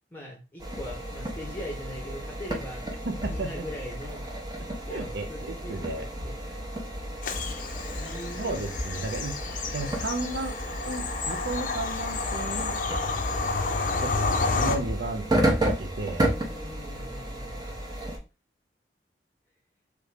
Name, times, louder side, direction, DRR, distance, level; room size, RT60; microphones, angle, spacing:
voice 1, 0.1-2.8 3.3-4.2 4.9-6.4 7.9-8.6 13.0-13.2 16.4-17.8, left 1 dB, 10° left, -1 dB, 0.8 m, -41 dB
sound 1, 0.6-18.2, right 1 dB, 25° right, 0.6 m, -32 dB
voice 2, 3.0-3.6 4.9-6.0 8.4-9.4 9.7-10.5 10.9-12.8 14.0-14.1 14.5-16.3, right 2 dB, 70° right, 6 dB, 0.6 m, -33 dB
Bird vocalization bird call bird song / Train, 7.2-14.8, left 3 dB, 50° left, 0.5 m, -30 dB
3.2 x 2.5 x 3.3 m, 0.29 s
head